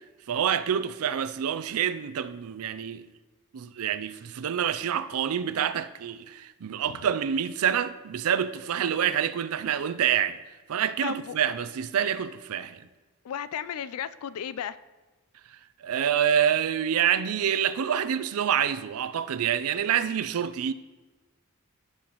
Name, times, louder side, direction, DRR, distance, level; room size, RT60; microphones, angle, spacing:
voice 1, 0.3-3.1 3.5-10.4 10.7-12.8 15.8-20.7, right 8 dB, 85° right, 0.4 m, -27 dB
voice 2, 11.0-11.4 13.2-14.8, left 9 dB, 85° left, 0.3 m, -34 dB
15.0 x 5.6 x 3.0 m
head